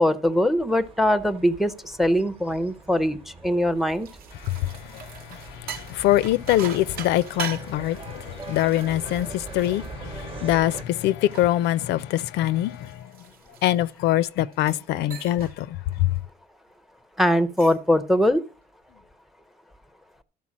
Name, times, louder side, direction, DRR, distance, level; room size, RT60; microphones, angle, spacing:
voice 1, 0.0-3.2 3.4-4.1 17.2-18.4, left 1 dB, ahead, 0.5 m, -21 dB
sound 1, 0.8-10.8, right 4 dB, 30° right, 1.0 m, -43 dB
sound 2, 3.8-10.6 11.0-14.0 14.5-14.9 15.1-15.6 15.9-16.2 17.3-17.9, right 8 dB, 55° right, 0.8 m, -41 dB
voice 2, 4.4-13.0 13.6-16.1, left 14 dB, 70° left, 0.4 m, -24 dB
12.0 x 4.5 x 7.3 m
cardioid pair, 155°, 18 cm